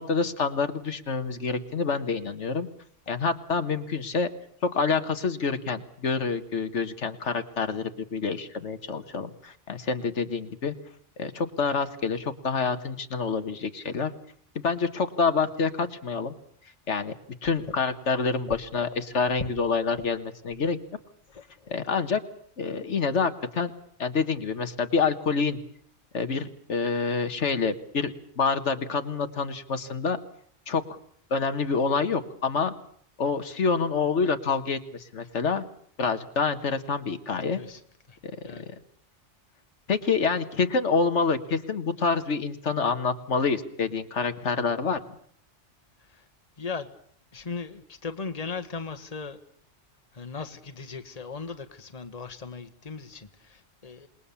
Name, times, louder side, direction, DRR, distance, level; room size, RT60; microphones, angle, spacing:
voice 1, 0.0-2.7 3.1-4.3 4.6-10.7 11.2-14.1 14.6-16.3 16.9-17.1 17.4-20.8 21.7-22.2 22.6-23.7 24.0-25.6 26.1-30.2 30.7-31.0 31.3-32.7 33.2-35.6 36.0-37.6 38.2-38.4 38.7-38.8 39.9-45.0, left 5 dB, 75° left, 9 dB, 1.7 m, -27 dB
voice 2, 21.3-21.7 37.6-37.8 38.1-38.2 38.4-38.6 46.6-46.9 47.3-49.4 50.1-54.1, left 4 dB, 35° left, 9 dB, 1.5 m, -38 dB
27.5 x 20.5 x 7.1 m, 0.62 s
omnidirectional pair, 1.2 m